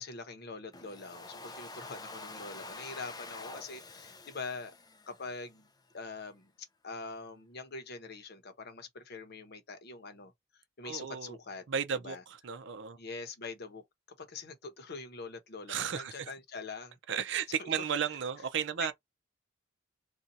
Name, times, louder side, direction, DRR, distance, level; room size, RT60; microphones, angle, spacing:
voice 1, 0.0-4.7 5.1-5.7 5.9-6.5 6.8-10.3 10.8-11.6 12.0-12.2 13.0-13.8 14.2-17.0 17.6-17.7 18.8-18.9, left 4 dB, 55° left, 0.8 m, -44 dB
Domestic sounds home sounds, 0.7-5.7, left 3 dB, 20° left, 0.4 m, -47 dB
voice 2, 10.8-11.4 11.7-13.0 15.7-16.3 17.1-18.9, right 7 dB, 65° right, 0.5 m, -34 dB
2.6 x 2.3 x 4.0 m
head